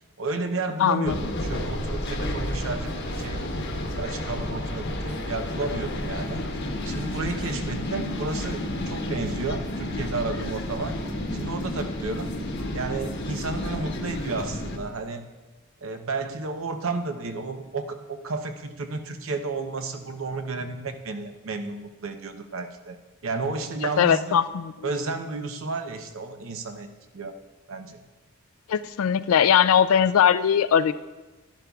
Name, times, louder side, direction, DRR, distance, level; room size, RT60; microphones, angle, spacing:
voice 1, 0.2-3.5 4.0-6.4 6.8-8.6 8.9-11.0 11.3-12.3 12.7-15.3 15.8-23.0 23.2-24.3 24.8-27.4 27.7-28.0, right 3 dB, 70° right, 7 dB, 0.7 m, -32 dB
voice 2, 0.8-1.2 24.0-24.9 28.7-30.9, left 8 dB, 80° left, 14 dB, 0.4 m, -20 dB
sound 1, 1.1-14.8, left 1 dB, 55° left, 1.0 m, -31 dB
11.5 x 11.0 x 2.3 m, 1.2 s
head